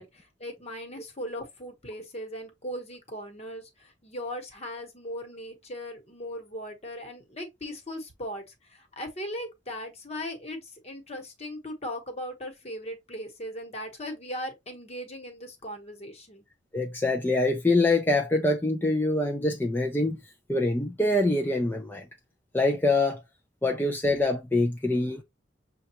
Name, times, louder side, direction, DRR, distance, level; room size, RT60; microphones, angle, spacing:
voice 1, 0.0-16.4, equal, 35° left, 1.2 m, -38 dB
voice 2, 16.7-20.2 20.5-22.0 22.5-23.2 23.6-25.2, left 2 dB, 10° left, 0.4 m, -25 dB
6.4 x 2.3 x 2.9 m
head